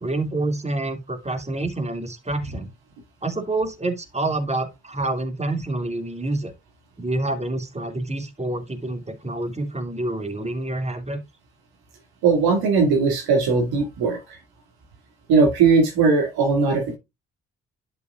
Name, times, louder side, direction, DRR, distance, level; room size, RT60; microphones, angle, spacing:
voice 1, 0.0-2.7 3.2-6.5 7.0-11.2, right 2 dB, 15° right, 2.5 m, -27 dB
voice 2, 12.2-14.2 15.3-17.0, right 4 dB, 70° right, 2.4 m, -19 dB
11.0 x 6.3 x 2.4 m
hypercardioid pair, 40°, 39 cm